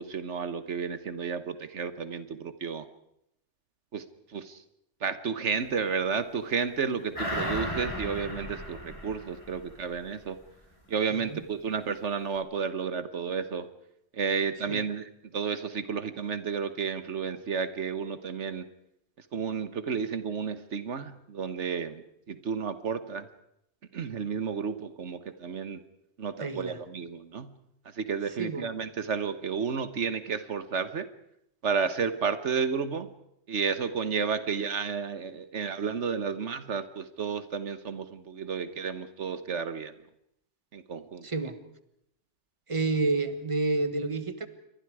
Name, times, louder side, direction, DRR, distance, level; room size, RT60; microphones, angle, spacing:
voice 1, 0.0-2.9 3.9-4.6 5.0-10.4 10.9-13.7 14.1-18.7 19.3-23.3 23.9-25.8 26.2-27.5 27.8-31.1 31.6-33.1 33.5-39.9 40.7-41.3, right 6 dB, 75° right, 12 dB, 1.5 m, -32 dB
sound 1, 7.1-10.1 10.4-10.5, left 1 dB, 25° left, 5.6 m, -35 dB
voice 2, 26.4-26.8 28.4-28.7 41.2-41.6 42.7-44.5, right 3 dB, 25° right, 10 dB, 1.6 m, -29 dB
28.5 x 24.0 x 4.9 m, 0.77 s
omnidirectional pair, 1.2 m